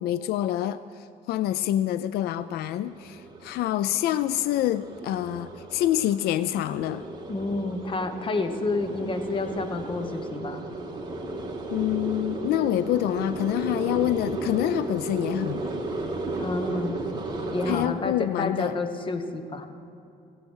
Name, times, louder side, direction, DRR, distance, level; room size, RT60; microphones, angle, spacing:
voice 1, 0.0-7.0 11.7-15.7 17.7-18.8, left 12 dB, 70° left, 14 dB, 0.4 m, -26 dB
sound 1, 2.3-17.8, right 2 dB, 25° right, 1.8 m, -34 dB
voice 2, 7.3-10.6 16.4-17.0 17.5-19.7, left 3 dB, 30° left, 8 dB, 1.1 m, -29 dB
16.0 x 8.1 x 6.3 m, 2.6 s
cardioid pair, 110°, 17 cm